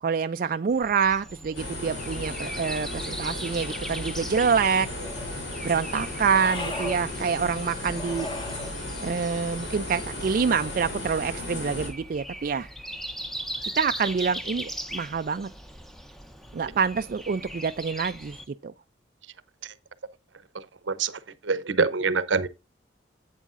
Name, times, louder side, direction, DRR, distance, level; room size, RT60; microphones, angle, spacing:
voice 1, 0.0-4.9 5.6-8.3 9.0-12.7 13.8-15.5 16.5-18.4 18.6-18.7, right 6 dB, 50° right, 0.3 m, -26 dB
Breathing, 0.7-18.5, right 1 dB, ahead, 0.7 m, -40 dB
sound 1, 1.5-11.9, left 1 dB, 75° left, 3.4 m, -35 dB
sound 2, 4.5-5.4 6.3-7.0 7.9-8.8 10.1-10.9, left 2 dB, 25° left, 1.4 m, -38 dB
voice 2, 20.5-22.5, right 4 dB, 85° right, 0.8 m, -26 dB
11.0 x 8.3 x 2.5 m
head